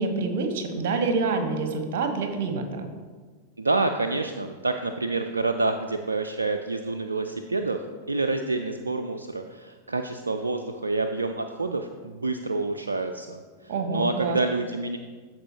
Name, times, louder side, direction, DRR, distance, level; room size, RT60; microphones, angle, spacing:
voice 1, 0.0-2.9 13.7-14.4, right 3 dB, 50° right, 6 dB, 1.1 m, -27 dB
voice 2, 3.6-15.0, right 3 dB, 80° right, 6 dB, 0.3 m, -28 dB
13.5 x 4.6 x 3.0 m, 1.5 s
figure-of-eight pair, 90°, 0 cm